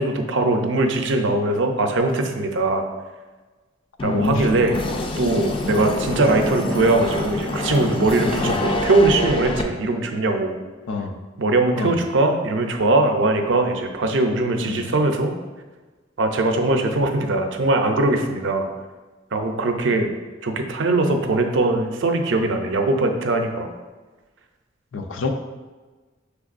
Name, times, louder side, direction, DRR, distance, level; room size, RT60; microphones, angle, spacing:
voice 1, 0.0-2.8 4.0-4.8 5.2-10.6 11.4-15.3 16.2-18.7 19.3-20.1 20.4-23.7, right 2 dB, 75° right, 4 dB, 0.5 m, -21 dB
voice 2, 4.0-4.5 8.4-8.6 10.9-11.1 11.8-12.0 14.6-14.9 24.9-25.3, left 3 dB, 90° left, 5 dB, 0.5 m, -26 dB
sound 1, 4.0-9.6, left 2 dB, 30° left, 0.4 m, -26 dB
5.8 x 3.4 x 2.5 m, 1.3 s
head